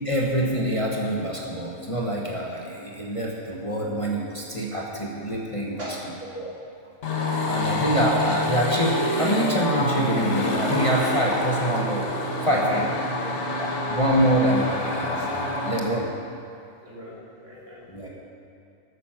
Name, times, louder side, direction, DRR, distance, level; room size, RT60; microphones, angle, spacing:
voice 1, 0.0-5.9 6.3-6.5 7.5-12.0 12.4-12.9 13.6-16.1 17.9-18.1, right 1 dB, 25° left, -3 dB, 1.3 m, -25 dB
voice 2, 5.8-6.3 7.3-7.8 11.5-11.7 12.7-12.8 13.1-13.6 16.8-18.1, equal, 60° right, -6 dB, 3.2 m, -41 dB
sound 1, 7.0-15.9, left 1 dB, 60° left, 1.6 m, -27 dB
13.5 x 9.7 x 5.9 m, 2.4 s
omnidirectional pair, 1.4 m